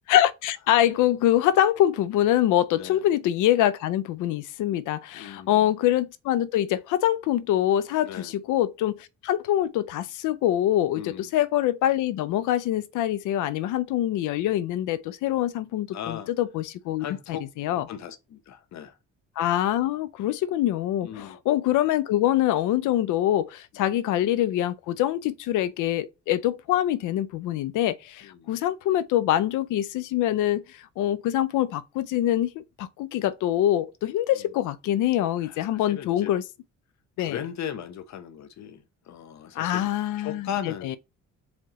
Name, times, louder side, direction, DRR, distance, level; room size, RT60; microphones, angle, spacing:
voice 1, 0.1-17.1 17.6-17.8 19.4-36.4 37.2-37.4 39.6-40.5 40.8-41.0, left 12 dB, 90° left, 0.6 m, -24 dB
voice 2, 2.7-3.1 5.1-5.7 8.0-8.3 10.9-11.3 15.9-16.3 17.0-17.4 17.7-19.0 20.2-20.4 21.0-21.4 23.7-23.8 28.2-28.5 34.3-34.5 35.4-36.3 37.2-39.9 40.2-41.0, left 9 dB, 65° left, 0.8 m, -37 dB
4.9 x 3.4 x 3.1 m
cardioid pair, 90°, 30 cm